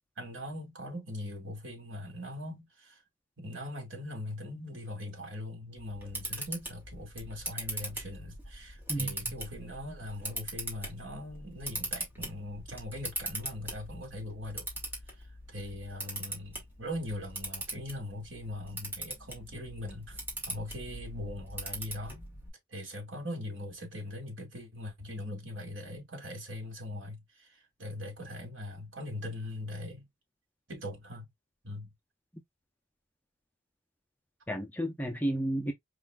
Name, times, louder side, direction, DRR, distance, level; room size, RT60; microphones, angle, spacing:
voice 1, 0.2-3.0 3.4-14.7 15.5-20.2 20.5-22.2 22.7-30.1 30.7-31.3 31.6-31.9, left 1 dB, 60° right, 2.4 m, -41 dB
Camera, 5.8-22.5, right 1 dB, 10° right, 1.8 m, -41 dB
voice 2, 8.9-9.4 34.5-35.7, right 1 dB, 10° left, 0.6 m, -32 dB
4.8 x 3.7 x 2.3 m
head